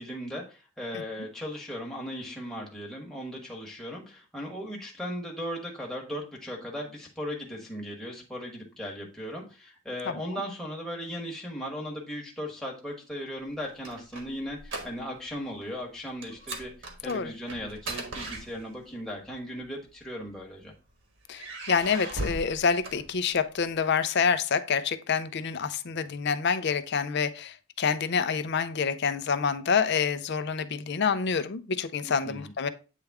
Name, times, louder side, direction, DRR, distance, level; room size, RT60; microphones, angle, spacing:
voice 1, 0.0-16.7 17.0-20.7 32.1-32.5, equal, ahead, -2 dB, 1.1 m, -37 dB
sound 1, 13.4-15.3 15.6-15.8 16.2-19.0 19.9-20.7 21.3-23.6, right 2 dB, 60° right, 1.3 m, -39 dB
voice 2, 21.3-32.7, left 6 dB, 55° left, 12 dB, 0.5 m, -27 dB
8.3 x 3.4 x 3.4 m, 0.33 s
head